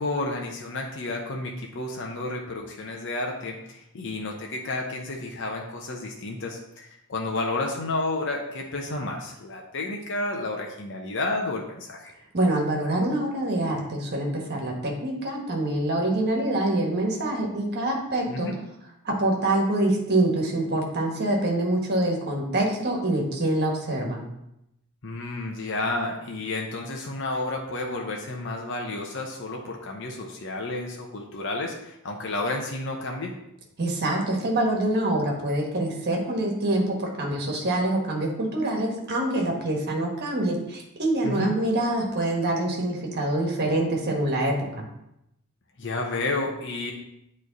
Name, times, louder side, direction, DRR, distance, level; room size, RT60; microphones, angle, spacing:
voice 1, 0.0-12.1 18.3-18.6 25.0-33.4 41.2-41.5 45.8-46.9, left 2 dB, 55° left, 0 dB, 0.7 m, -31 dB
voice 2, 12.3-18.5 19.0-24.2 33.8-44.8, right 1 dB, 45° right, 0 dB, 1.4 m, -25 dB
8.7 x 3.3 x 4.0 m, 0.83 s
head